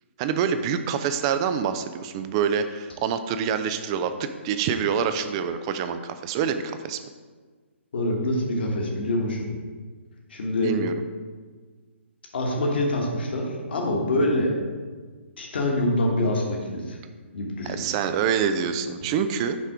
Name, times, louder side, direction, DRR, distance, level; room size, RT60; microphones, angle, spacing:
voice 1, 0.2-7.0 10.6-10.9 17.6-19.6, right 7 dB, 25° right, 10 dB, 0.4 m, -26 dB
voice 2, 7.9-9.5 10.3-10.8 12.3-14.5 15.4-17.0 17.3-17.8, left 1 dB, 55° left, 0 dB, 1.5 m, -25 dB
6.0 x 5.4 x 4.7 m, 1.5 s
figure-of-eight pair, 130°, 7 cm